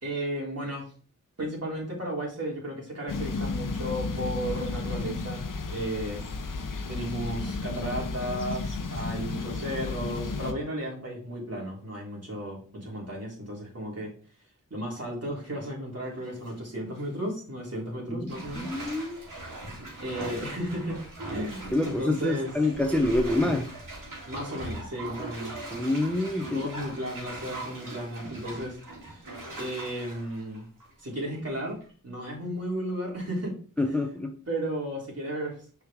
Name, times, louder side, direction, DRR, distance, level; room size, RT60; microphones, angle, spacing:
voice 1, 0.0-0.9 1.4-5.4 5.7-6.2 6.9-14.1 14.7-18.7 19.2-19.3 20.0-21.0 21.3-22.5 24.3-25.6 26.5-28.8 29.1-29.3 29.6-30.6 31.0-33.6 34.5-35.6, right 1 dB, 50° right, -3 dB, 3.5 m, -34 dB
sound 1, 3.1-10.5, left 4 dB, 75° left, 0.9 m, -33 dB
Bathtub (filling or washing), 16.1-16.5 17.0-17.1 18.3-31.4 31.8-31.9, right 2 dB, 75° right, 2.9 m, -40 dB
voice 2, 18.1-19.2 21.7-23.7 25.7-26.6 33.8-34.4, left 2 dB, 5° left, 4 dB, 0.8 m, -27 dB
6.4 x 4.9 x 3.6 m, 0.41 s
wide cardioid pair, 60°, 32 cm